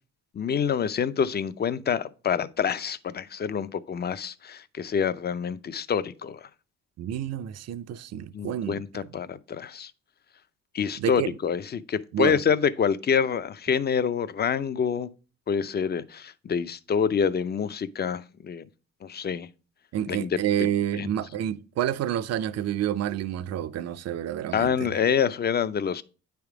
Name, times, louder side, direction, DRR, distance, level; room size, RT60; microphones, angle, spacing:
voice 1, 0.3-6.5 8.3-9.9 10.7-15.1 15.5-18.6 19.0-19.5 20.1-20.3 20.9-21.1 24.5-26.0, left 7 dB, 35° left, 0.5 m, -27 dB
voice 2, 7.0-8.8 11.0-11.4 12.1-12.4 19.9-24.9, right 10 dB, 55° right, 0.5 m, -29 dB
8.8 x 3.5 x 4.8 m
cardioid pair, 90°, 30 cm